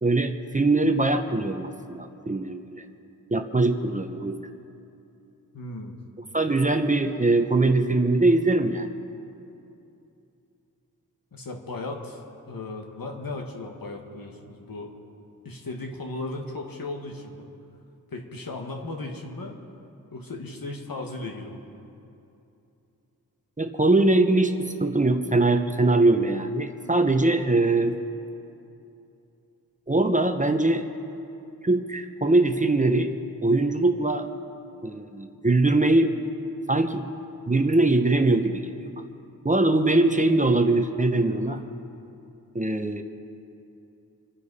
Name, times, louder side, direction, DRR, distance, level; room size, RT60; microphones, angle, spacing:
voice 1, 0.0-2.8 3.3-4.4 6.3-8.9 23.6-28.0 29.9-30.8 31.6-33.1 33.4-34.3 34.8-36.1 36.7-37.1 37.5-38.7 39.4-41.6 42.5-43.0, right 2 dB, 20° right, 7 dB, 0.8 m, -22 dB
voice 2, 5.5-6.0 11.3-12.2 12.5-14.9 15.5-17.5 18.1-19.6 20.1-21.6 41.4-41.7, left 2 dB, 70° left, 2 dB, 1.7 m, -36 dB
28.0 x 9.8 x 4.2 m, 2.8 s
wide cardioid pair, 95°, 36 cm